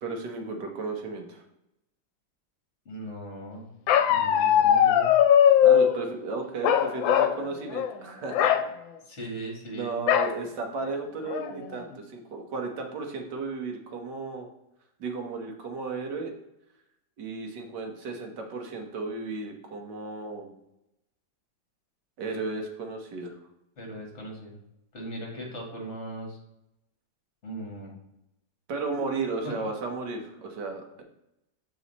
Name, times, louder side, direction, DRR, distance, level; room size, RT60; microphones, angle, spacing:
voice 1, 0.0-1.4 5.6-8.6 9.7-14.5 15.0-16.3 17.2-20.5 22.2-23.3 28.7-31.0, right 3 dB, 65° right, 3 dB, 1.7 m, -34 dB
voice 2, 2.9-3.7 4.1-5.1 9.0-10.0 23.8-24.5 24.9-26.4 27.4-27.9 29.4-29.5, right 1 dB, 40° left, 0 dB, 2.1 m, -38 dB
Bark, 3.9-6.0 6.6-7.4 7.7-7.9 8.3-8.6 10.1-10.4 10.9-11.0 11.3-11.8, left 9 dB, 90° left, 1.3 m, -20 dB
7.0 x 4.8 x 4.1 m, 0.85 s
omnidirectional pair, 2.1 m